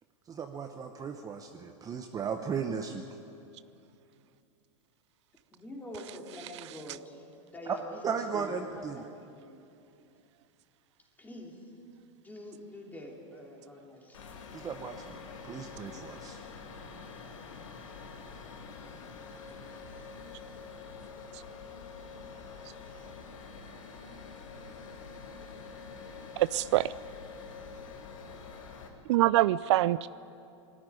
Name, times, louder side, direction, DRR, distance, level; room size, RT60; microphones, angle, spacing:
voice 1, 0.3-3.0 7.7-7.8 8.0-9.0 14.5-16.4, right 6 dB, 20° right, 5 dB, 0.9 m, -36 dB
voice 2, 5.5-9.6 11.2-11.7 12.2-14.3, left 1 dB, 10° left, 0 dB, 3.3 m, -46 dB
Janitor's Closet Ambience, 14.1-28.9, left 5 dB, 80° left, 2.6 m, -46 dB
voice 3, 26.4-26.9 29.1-30.1, right 16 dB, 65° right, 17 dB, 0.4 m, -24 dB
20.0 x 13.5 x 9.8 m, 2.7 s
hypercardioid pair, 125°, 16 cm